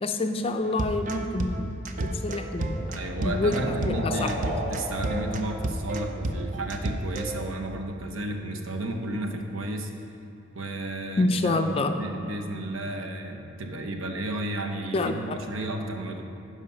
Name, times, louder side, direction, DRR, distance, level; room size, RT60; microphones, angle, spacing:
voice 1, 0.0-1.7 2.0-4.5 11.2-11.9 14.9-15.4, left 2 dB, 25° left, 6 dB, 0.4 m, -27 dB
sound 1, 0.6-7.4, right 1 dB, 40° right, 0.5 m, -31 dB
sound 2, 1.9-6.7, right 1 dB, 55° right, 1.7 m, -38 dB
voice 2, 2.9-4.4 4.7-9.9 10.5-16.2, right 1 dB, 80° right, 3 dB, 0.8 m, -32 dB
11.0 x 4.9 x 5.5 m, 2.7 s
head